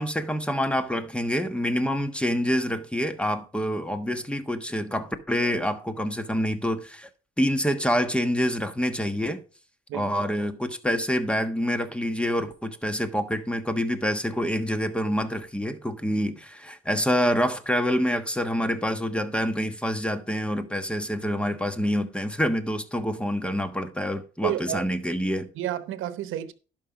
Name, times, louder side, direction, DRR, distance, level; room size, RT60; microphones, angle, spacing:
voice 1, 0.0-7.1 7.4-9.4 9.9-25.5, equal, 5° left, 1.3 m, -27 dB
voice 2, 24.4-24.8 25.6-26.5, right 12 dB, 85° right, 0.9 m, -30 dB
11.5 x 5.6 x 5.0 m
cardioid pair, 90°, 20 cm